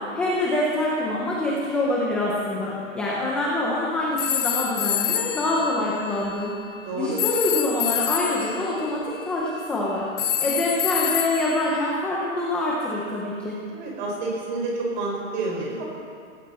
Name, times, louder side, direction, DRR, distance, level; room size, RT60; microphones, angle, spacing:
voice 1, 0.0-6.6 7.0-10.1 10.4-13.6, left 1 dB, 5° left, -5 dB, 0.6 m, -25 dB
sound 1, 4.2-6.4 7.2-8.6 10.2-11.9, left 10 dB, 60° left, 1.7 m, -27 dB
voice 2, 6.9-7.2 13.7-15.8, right 2 dB, 35° right, -3 dB, 5.4 m, -29 dB
17.5 x 17.5 x 4.3 m, 2.2 s
hypercardioid pair, 165°, 40 cm